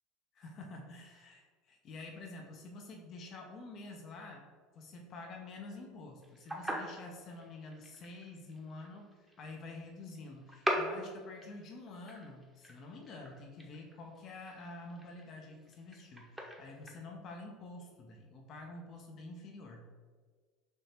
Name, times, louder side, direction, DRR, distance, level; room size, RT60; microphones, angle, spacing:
voice 1, 0.3-4.5 4.7-19.9, left 2 dB, 45° left, 2 dB, 0.6 m, -48 dB
sound 1, 6.2-16.9, equal, 5° right, 0.8 m, -41 dB
3.5 x 2.8 x 4.2 m, 1.5 s
supercardioid pair, 95°, 0 cm